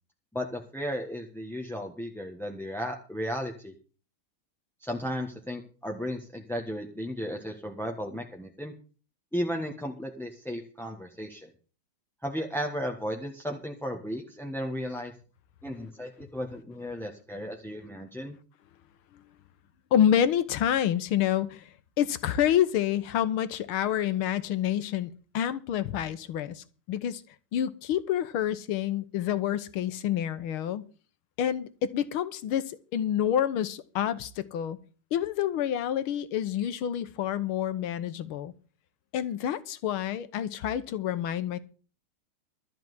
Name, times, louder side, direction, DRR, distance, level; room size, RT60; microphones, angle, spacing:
voice 1, 0.3-3.7 4.8-8.7 9.3-11.5 12.2-15.1 15.6-18.4, equal, ahead, 1.0 m, -35 dB
voice 2, 19.9-21.7 22.0-27.2 27.5-30.8 31.4-34.8 35.1-38.5 39.1-41.6, left 10 dB, 75° left, 1.8 m, -28 dB
13.0 x 6.0 x 9.5 m
omnidirectional pair, 2.4 m